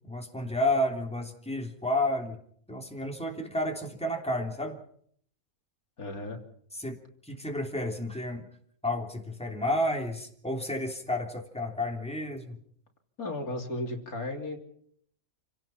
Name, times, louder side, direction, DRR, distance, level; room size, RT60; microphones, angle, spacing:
voice 1, 0.1-2.4 2.7-4.8 6.7-7.0 7.2-8.5 8.8-12.6, left 1 dB, 5° left, 2 dB, 3.3 m, -31 dB
voice 2, 6.0-6.4 13.2-14.6, left 2 dB, 85° left, 2 dB, 3.7 m, -34 dB
29.0 x 17.5 x 5.8 m, 0.63 s
omnidirectional pair, 1.5 m